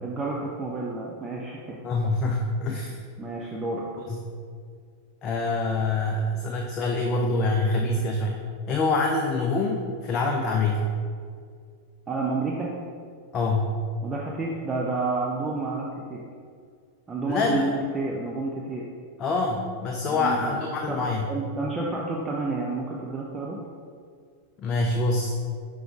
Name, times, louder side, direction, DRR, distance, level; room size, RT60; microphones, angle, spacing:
voice 1, 0.0-1.8 3.2-3.8 12.1-12.7 14.0-16.2 17.1-18.8 20.1-20.6 20.9-21.0 21.3-23.6, right 3 dB, 20° right, -3 dB, 0.6 m, -30 dB
voice 2, 1.8-3.0 4.1-4.2 5.2-8.4 8.7-10.8 13.3-13.7 17.3-17.6 19.2-21.3 24.6-25.3, left 3 dB, 30° left, 1 dB, 0.5 m, -25 dB
5.8 x 5.0 x 3.6 m, 2.1 s
figure-of-eight pair, 90°, 0 cm